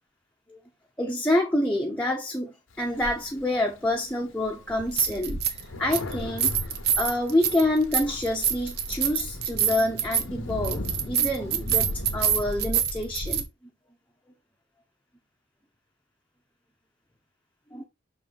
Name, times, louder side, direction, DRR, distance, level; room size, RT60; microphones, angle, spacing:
voice 1, 1.0-6.6 7.0-13.4 17.7-17.8, left 1 dB, 5° left, 0.8 m, -27 dB
Thunder, 2.7-4.0 4.5-4.6 4.9-12.7, left 1 dB, 80° left, 1.0 m, -39 dB
sound 1, 3.0-3.1 4.7-5.6 5.9-13.4, right 7 dB, 55° right, 0.9 m, -27 dB
5.9 x 4.4 x 3.6 m
head